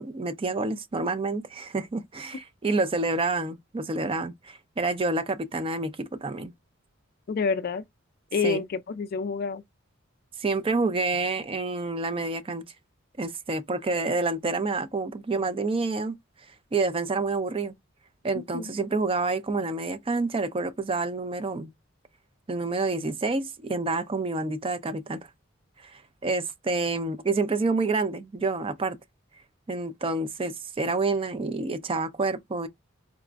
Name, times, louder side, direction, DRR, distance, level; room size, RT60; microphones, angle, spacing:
voice 1, 0.0-6.5 8.4-8.6 10.4-12.6 13.2-16.2 16.7-17.7 18.2-21.7 22.5-25.3 25.8-29.0 29.7-32.7, right 3 dB, 25° right, 0.4 m, -28 dB
voice 2, 7.3-7.8 8.3-9.6 18.3-18.7, left 5 dB, 50° left, 0.3 m, -28 dB
4.0 x 2.5 x 2.2 m
head